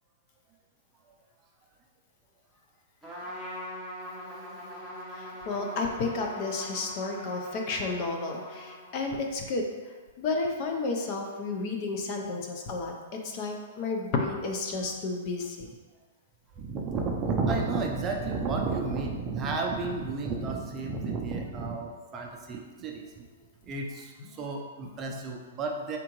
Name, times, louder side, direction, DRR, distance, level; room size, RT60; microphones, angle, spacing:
Trumpet, 3.0-9.2, left 1 dB, ahead, 0.9 m, -42 dB
voice 1, 5.1-9.6 10.2-12.9 13.2-15.7 24.3-24.4 24.8-25.1, left 3 dB, 40° left, 2 dB, 0.6 m, -32 dB
voice 2, 16.6-23.3 23.7-26.0, right 3 dB, 20° right, 0 dB, 0.5 m, -32 dB
4.9 x 3.6 x 3.0 m, 1.4 s
hypercardioid pair, 150°, 0 cm